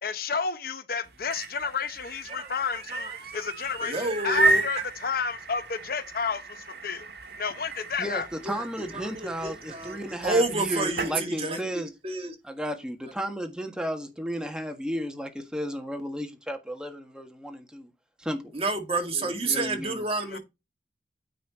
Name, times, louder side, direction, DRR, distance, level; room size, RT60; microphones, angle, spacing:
voice 1, 0.0-7.1 7.4-8.3 20.3-20.4, left 5 dB, 55° left, 0.8 m, -31 dB
sound 1, 1.1-11.2, right 3 dB, 65° right, 1.7 m, -33 dB
voice 2, 2.3-3.5 3.8-4.8 8.4-8.6 8.9-12.4 18.5-20.4, right 2 dB, 35° right, 2.1 m, -30 dB
voice 3, 8.0-11.9 12.5-17.9 18.2-18.5 19.5-20.0, equal, 5° right, 1.5 m, -33 dB
9.4 x 4.3 x 4.3 m
head